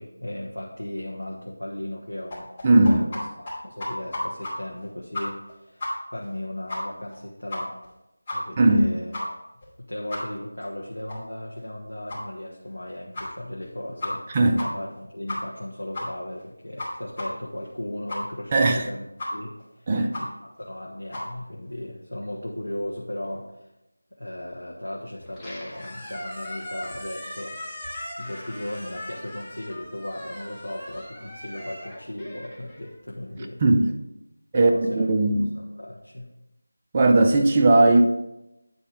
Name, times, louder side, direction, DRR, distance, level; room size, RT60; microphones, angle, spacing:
voice 1, 0.0-2.5 2.8-7.8 8.3-9.4 9.8-14.2 14.6-19.1 19.3-19.9 20.2-23.7 24.1-33.6 34.5-36.3, left 1 dB, 85° left, -2 dB, 1.3 m, -36 dB
sound 1, 2.3-3.2 3.5-3.6 3.8-4.5 4.8-4.9 5.1-5.5 5.8-5.9 6.2-6.3 6.7-6.8 7.1-7.2 7.5-7.9 8.3-8.4 8.7-8.8 9.1-9.2 9.6-9.7 10.1-10.2 10.6-10.7 11.1-11.2 11.6-11.7 12.1-12.2 12.6-12.7 13.1-13.3 13.6-13.7 14.0-14.3 14.6-14.7 14.9-15.0 15.3-15.6 15.9-16.1 16.4-16.5 16.8-16.9 17.2-17.3 17.6-17.7 18.1-18.2 18.6-18.7 19.2-19.3 19.6-19.7 20.1-20.2 20.6-20.7 21.1-21.2, left 2 dB, 25° left, 2.7 m, -33 dB
voice 2, 2.6-3.1 8.6-8.9 14.3-14.6 18.5-18.8 19.9-20.1 33.6-33.9 34.5-35.5 36.9-38.0, right 2 dB, 20° right, 4 dB, 0.6 m, -18 dB
Squeak, 25.2-33.5, left 1 dB, 5° left, 1.2 m, -39 dB
9.5 x 4.1 x 5.0 m, 0.89 s
figure-of-eight pair, 170°, 0 cm